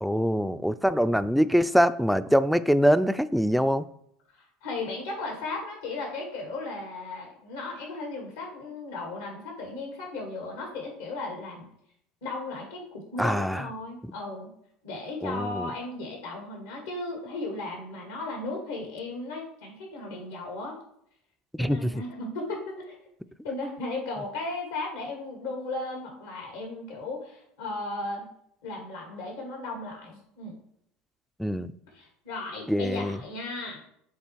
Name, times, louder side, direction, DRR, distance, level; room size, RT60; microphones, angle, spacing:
voice 1, 0.0-3.9 13.2-13.7 15.2-15.7 21.6-22.0 31.4-31.7 32.7-33.2, equal, ahead, 13 dB, 0.3 m, -24 dB
voice 2, 4.6-11.7 12.2-14.5 14.8-20.8 21.6-23.0 23.4-28.3 28.6-30.6 31.9-33.8, left 2 dB, 85° left, 0 dB, 2.2 m, -36 dB
7.3 x 3.4 x 4.5 m, 0.72 s
hypercardioid pair, 85°, 0 cm